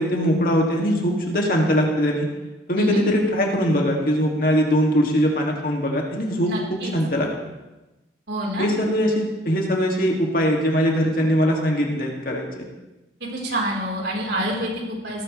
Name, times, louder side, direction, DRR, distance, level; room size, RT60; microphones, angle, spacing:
voice 1, 0.0-2.3 2.7-7.3 8.6-12.7, equal, 55° left, 0 dB, 2.4 m, -21 dB
voice 2, 6.5-6.9 8.3-8.7 13.2-15.2, right 1 dB, 80° right, -2 dB, 4.3 m, -27 dB
17.5 x 14.0 x 3.4 m, 1.1 s
head